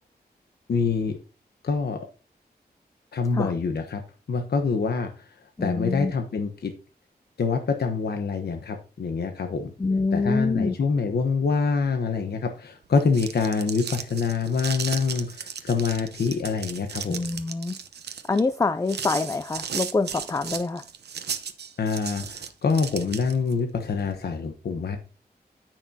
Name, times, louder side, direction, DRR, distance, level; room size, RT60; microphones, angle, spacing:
voice 1, 0.7-1.2 1.6-2.0 3.1-4.0 4.3-5.3 5.6-6.7 7.4-9.7 10.1-17.2 21.8-25.0, left 5 dB, 75° left, 5 dB, 1.0 m, -26 dB
voice 2, 5.6-6.1 9.8-10.8 17.1-17.8 18.3-20.8, left 3 dB, 20° left, 12 dB, 0.4 m, -25 dB
sound 1, 12.9-23.5, right 7 dB, 85° right, 0.9 m, -35 dB
13.5 x 6.0 x 2.8 m, 0.34 s
wide cardioid pair, 100°, 17 cm